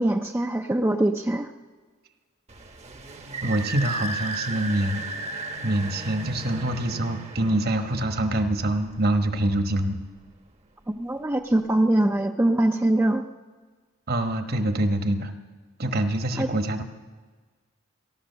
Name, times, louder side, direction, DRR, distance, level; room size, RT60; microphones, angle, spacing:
voice 1, 0.0-1.5 11.0-13.2 16.4-16.5, right 1 dB, 10° right, 4 dB, 0.5 m, -23 dB
sound 1, 2.5-9.8, right 2 dB, 35° right, 0.9 m, -36 dB
voice 2, 3.4-5.0 5.6-10.0 14.1-15.3 15.8-16.8, right 1 dB, 50° right, 7 dB, 1.2 m, -25 dB
18.5 x 11.5 x 6.8 m, 1.4 s
head